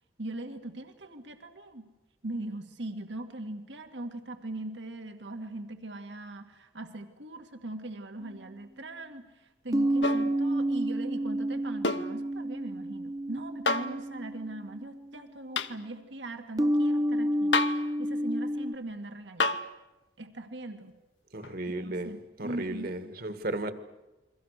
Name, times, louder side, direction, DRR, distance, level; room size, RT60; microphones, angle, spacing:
voice 1, 0.2-1.9 2.2-19.6 20.2-20.9 21.7-23.0, right 2 dB, 75° right, 7 dB, 2.0 m, -40 dB
sound 1, 8.2-8.3 9.7-15.2 16.6-18.7, right 1 dB, 20° right, 1.0 m, -30 dB
sound 2, 10.0-10.3 11.8-12.1 13.7-14.0 15.6-15.8 17.5-17.9 19.4-19.7 21.4-21.5, left 3 dB, 75° left, 1.1 m, -28 dB
voice 2, 21.3-23.7, right 2 dB, 55° right, 10 dB, 1.9 m, -35 dB
29.0 x 23.0 x 6.7 m, 1.1 s
head